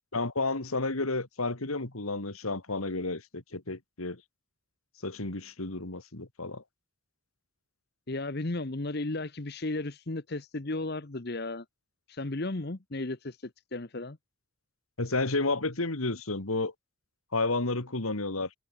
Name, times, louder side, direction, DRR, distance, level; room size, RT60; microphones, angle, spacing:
voice 1, 0.1-4.2 5.0-6.6 15.0-16.7 17.3-18.5, left 3 dB, 85° left, 2.5 m, -31 dB
voice 2, 8.1-11.6 12.1-14.2, left 2 dB, 50° left, 1.1 m, -34 dB
head